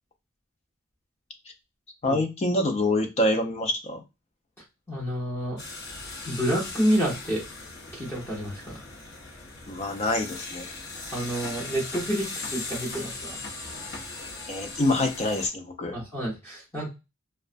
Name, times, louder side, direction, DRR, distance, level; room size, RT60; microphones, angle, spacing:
voice 1, 2.0-4.0 9.7-10.7 14.5-16.0, left 1 dB, 30° left, 5 dB, 0.4 m, -26 dB
voice 2, 4.9-5.6 6.2-7.4 7.9-8.8 11.1-13.4 15.9-16.9, equal, 10° left, -5 dB, 0.9 m, -29 dB
sound 1, 5.6-15.5, left 3 dB, 55° left, 0.7 m, -39 dB
2.4 x 2.1 x 2.4 m, 0.25 s
head